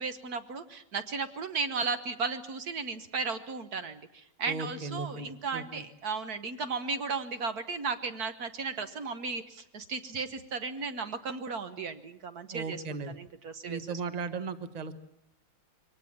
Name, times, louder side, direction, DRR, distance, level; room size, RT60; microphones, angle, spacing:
voice 1, 0.0-12.8 13.2-14.0, right 4 dB, 50° right, 9 dB, 1.4 m, -35 dB
voice 2, 4.5-5.8 12.5-13.1 13.7-14.9, right 4 dB, 30° right, 11 dB, 0.8 m, -37 dB
23.5 x 18.0 x 8.5 m, 0.78 s
omnidirectional pair, 2.3 m